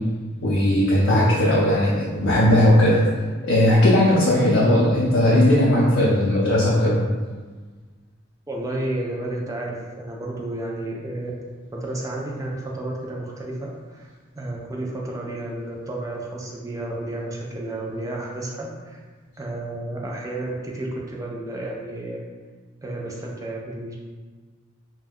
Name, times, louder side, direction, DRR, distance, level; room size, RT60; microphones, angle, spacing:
voice 1, 0.4-3.0 3.4-7.0, left 1 dB, 85° left, -6 dB, 0.5 m, -17 dB
voice 2, 8.5-11.3 11.7-14.1 14.4-19.0 19.4-22.3 22.8-24.0, right 1 dB, 15° right, -2 dB, 0.3 m, -31 dB
2.3 x 2.1 x 3.3 m, 1.4 s
head